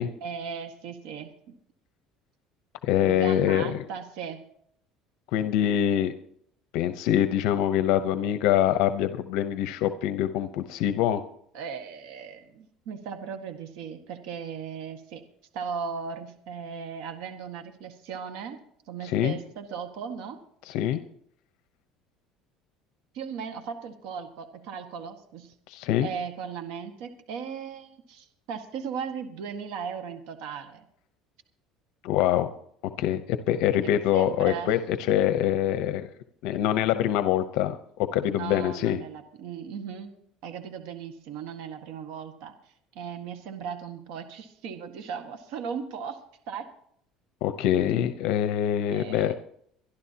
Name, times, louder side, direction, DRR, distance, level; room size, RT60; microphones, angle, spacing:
voice 1, 0.2-1.6 3.0-4.4 11.5-15.2 15.5-18.6 18.9-20.4 23.1-25.5 26.0-30.8 33.8-34.7 38.3-40.1 40.4-42.5 42.9-46.2 46.5-46.7 48.9-49.3, right 6 dB, 75° right, 7 dB, 1.7 m, -37 dB
voice 2, 2.8-3.8 5.3-6.1 6.7-11.2 19.0-19.4 20.6-21.0 25.7-26.1 32.0-32.5 33.0-36.1 36.4-39.0 47.4-49.3, left 11 dB, 70° left, 10 dB, 0.8 m, -24 dB
24.0 x 12.0 x 2.9 m, 0.67 s
cardioid pair, 155°, 0 cm